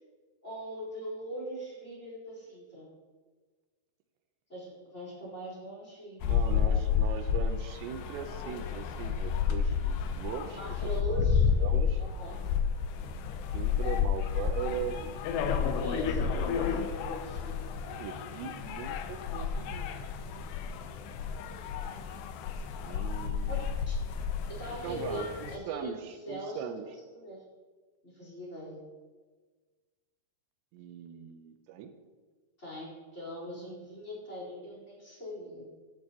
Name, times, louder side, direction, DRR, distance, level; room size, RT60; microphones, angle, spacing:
voice 1, 0.4-2.9 4.5-6.8 10.6-11.4 12.0-12.4 13.8-14.0 15.8-17.6 23.5-23.6 23.9-24.0 24.6-25.9 26.3-26.7 27.1-27.4 28.0-28.8 32.6-35.6, equal, 15° left, -5 dB, 4.2 m, -41 dB
sound 1, 6.2-25.6, left 7 dB, 80° left, 3.0 m, -31 dB
voice 2, 6.2-10.6 11.2-11.3 11.6-12.0 13.5-15.7 16.1-16.5 16.7-16.9 17.9-20.0 22.8-23.7 24.8-26.9 30.7-31.9, right 8 dB, 90° right, 7 dB, 3.1 m, -40 dB
17.0 x 11.0 x 3.0 m, 1.4 s
omnidirectional pair, 4.9 m